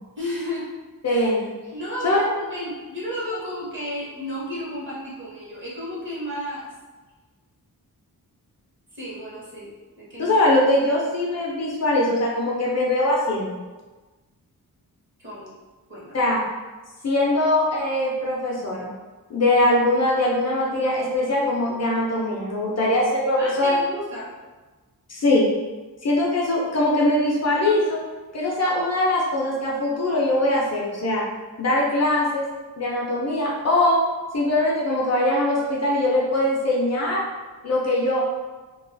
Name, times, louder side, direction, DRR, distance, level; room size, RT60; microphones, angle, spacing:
voice 1, 0.2-0.7 1.0-1.3 1.7-6.7 8.9-10.4 15.2-15.5 15.9-16.2 23.4-24.3, equal, 30° right, -7 dB, 0.8 m, -33 dB
voice 2, 1.0-1.4 2.0-2.2 10.2-13.6 16.1-16.4 17.0-18.9 19.3-23.7 25.1-25.5 26.0-28.0 28.3-31.2 31.6-32.4 32.8-34.0 34.3-37.2 37.6-38.2, left 1 dB, 45° left, -4 dB, 0.5 m, -21 dB
2.3 x 2.3 x 2.5 m, 1.3 s
wide cardioid pair, 135°, 38 cm